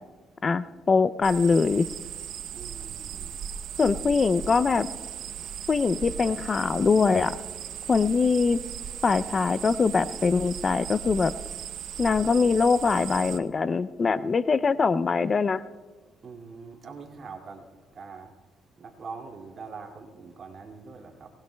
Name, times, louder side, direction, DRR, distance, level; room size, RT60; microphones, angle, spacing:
voice 1, 0.4-1.9 3.8-4.9 5.7-7.4 7.9-8.6 9.0-11.3 12.0-15.6, left 4 dB, 35° left, 15 dB, 0.5 m, -23 dB
sound 1, 1.2-13.4, right 9 dB, 75° right, 0.7 m, -37 dB
voice 2, 2.5-3.4 3.9-4.1 16.2-17.6 17.9-18.3 18.8-21.3, right 5 dB, 50° right, 1 dB, 2.4 m, -43 dB
23.5 x 19.5 x 2.3 m, 1.4 s
cardioid pair, 80°, 0 cm